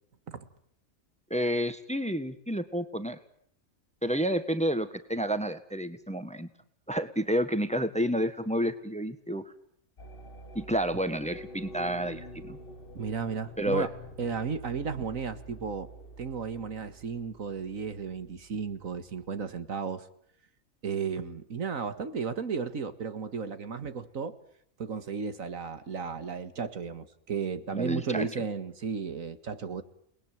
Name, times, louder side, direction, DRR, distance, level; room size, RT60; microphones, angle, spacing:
voice 1, 1.3-3.2 4.0-6.5 6.9-9.4 10.5-12.6 13.6-13.9 27.7-28.3, equal, 5° left, 11 dB, 1.5 m, -30 dB
sound 1, 10.0-19.7, equal, 45° left, 1.7 m, -47 dB
voice 2, 13.0-13.9 14.2-15.9 16.2-20.1 20.8-24.4 24.8-29.8, right 5 dB, 80° right, 11 dB, 2.1 m, -34 dB
29.5 x 20.5 x 9.2 m, 0.68 s
omnidirectional pair, 1.4 m